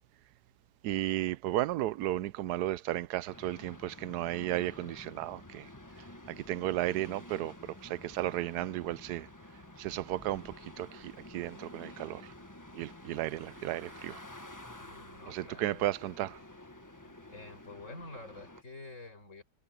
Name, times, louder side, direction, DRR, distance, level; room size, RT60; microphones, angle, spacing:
voice 1, 0.8-5.6 6.5-7.5 7.9-9.2 9.8-10.4 10.8-10.9 11.3-12.2 12.8-14.2 15.3-16.3, right 15 dB, 90° right, 1.1 m, -33 dB
sound 1, 3.3-18.6, left 1 dB, 15° left, 1.2 m, -50 dB
voice 2, 14.8-15.9 17.3-19.4, left 2 dB, 50° left, 6.4 m, -48 dB
omnidirectional pair, 1.6 m